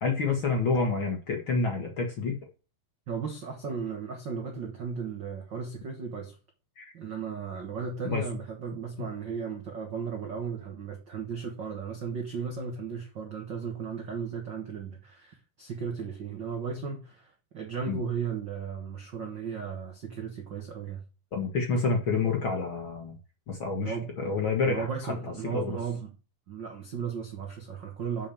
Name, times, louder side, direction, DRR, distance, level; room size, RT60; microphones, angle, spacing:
voice 1, 0.0-2.4 6.8-6.9 8.0-8.2 17.9-18.0 21.3-23.2 23.5-25.1 25.4-25.8, left 4 dB, 55° left, 1.4 m, -28 dB
voice 2, 3.1-6.4 6.9-21.0 23.8-24.1 24.7-26.1 26.5-28.3, right 6 dB, 70° right, 1.1 m, -35 dB
7.4 x 5.6 x 6.9 m
omnidirectional pair, 4.4 m